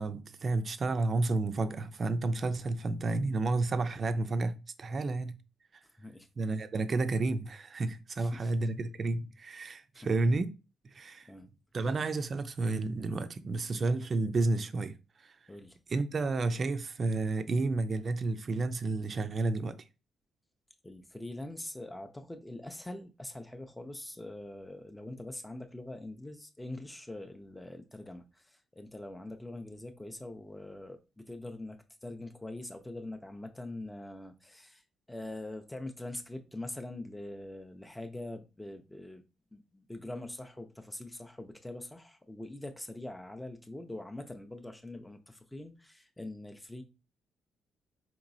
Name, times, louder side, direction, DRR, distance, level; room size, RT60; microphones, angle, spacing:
voice 1, 0.0-5.4 6.4-10.5 10.9-11.3 11.7-15.3 15.9-19.8, right 3 dB, 40° right, 0.4 m, -31 dB
voice 2, 8.2-8.5 9.9-10.2 11.3-11.5 15.5-15.8 20.8-39.2 39.5-46.8, left 1 dB, 10° left, 0.5 m, -43 dB
4.6 x 3.0 x 2.6 m
cardioid pair, 90°, 0 cm